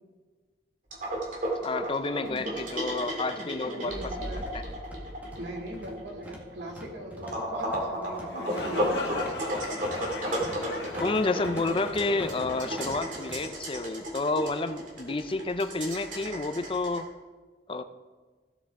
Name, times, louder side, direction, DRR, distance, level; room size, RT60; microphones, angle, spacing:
sound 1, 0.9-17.0, equal, 45° right, 2.6 m, -33 dB
voice 1, 1.6-4.6 11.0-17.1 17.7-17.8, left 3 dB, 30° left, 10 dB, 0.5 m, -30 dB
sound 2, 3.0-13.4, equal, 10° right, 1.7 m, -46 dB
voice 2, 3.6-4.4 5.4-9.2, right 1 dB, 85° right, 0 dB, 2.5 m, -39 dB
sound 3, 8.1-13.9, left 3 dB, 70° left, 1.8 m, -39 dB
16.0 x 8.0 x 3.7 m, 1.4 s
head